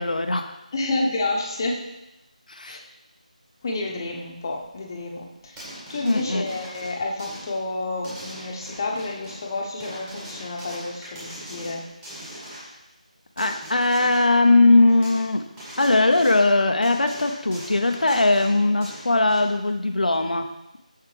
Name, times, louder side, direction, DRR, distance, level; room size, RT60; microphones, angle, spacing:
voice 1, 0.0-0.6 2.5-2.8 6.0-6.5 13.4-15.4 15.8-20.5, left 2 dB, 85° left, 6 dB, 0.6 m, -20 dB
voice 2, 0.7-1.8 2.7-2.8 3.6-5.6 5.9-11.8, left 2 dB, 30° left, -1 dB, 0.9 m, -29 dB
sound 1, 5.5-7.6 8.0-9.5 9.8-12.8 13.4-14.4 14.9-15.3 15.6-16.5 16.8-19.6 20.1-20.2, equal, 10° right, 1.6 m, -41 dB
6.8 x 6.5 x 3.3 m, 0.93 s
figure-of-eight pair, 170°, 4 cm